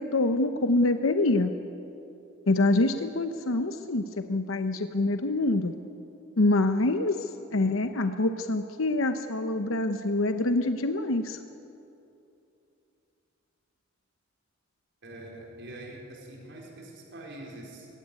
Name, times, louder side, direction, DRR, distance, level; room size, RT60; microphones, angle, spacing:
voice 1, 0.0-1.5 2.5-5.7 6.4-11.4, left 2 dB, 80° left, 7 dB, 0.9 m, -25 dB
voice 2, 15.0-17.9, right 1 dB, 60° right, -1 dB, 4.5 m, -44 dB
21.5 x 16.0 x 9.6 m, 2.8 s
head